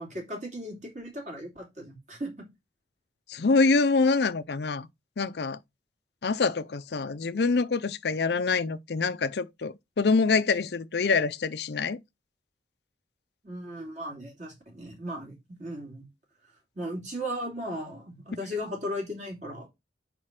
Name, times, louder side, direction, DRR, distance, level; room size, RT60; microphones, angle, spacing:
voice 1, 0.0-2.5 13.4-16.1 16.7-19.7, equal, 40° right, 2.8 m, -36 dB
voice 2, 3.3-4.9 5.2-5.6 6.2-12.0, left 4 dB, 65° left, 0.5 m, -25 dB
5.1 x 4.8 x 5.9 m
head